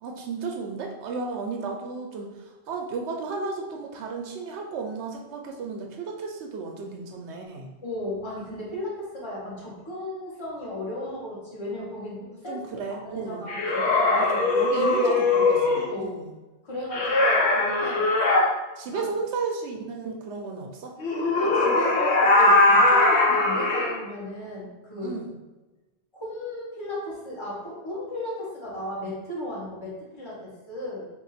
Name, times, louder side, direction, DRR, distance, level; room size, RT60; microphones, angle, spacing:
voice 1, 0.0-7.7 12.5-13.5 14.1-16.3 18.8-21.0 25.0-25.3, right 4 dB, 85° right, 2 dB, 0.9 m, -33 dB
voice 2, 7.8-12.6 13.0-14.3 14.7-15.2 15.9-16.2 16.6-18.1 18.8-19.2 21.4-25.2 26.1-31.1, left 1 dB, 25° left, -7 dB, 1.2 m, -35 dB
sound 1, 13.5-15.9 16.9-18.4 21.0-23.9, left 2 dB, 80° left, 1.0 m, -20 dB
3.6 x 2.5 x 4.1 m, 1.1 s
omnidirectional pair, 1.1 m